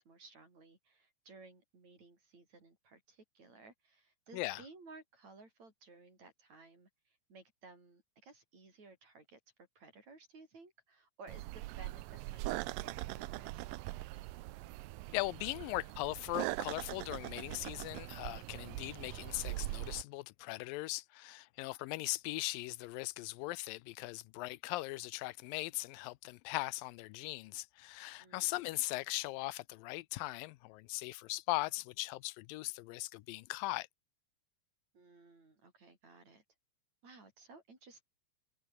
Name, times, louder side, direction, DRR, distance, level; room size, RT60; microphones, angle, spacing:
voice 1, 0.0-9.4 9.8-13.7 28.2-28.6 34.9-36.4 37.0-38.0, right 3 dB, 50° right, 7.8 m, -57 dB
sound 1, 11.3-20.0, right 18 dB, 85° right, 2.4 m, -42 dB
voice 2, 15.1-33.9, left 19 dB, 85° left, 2.3 m, -39 dB
omnidirectional pair, 4.0 m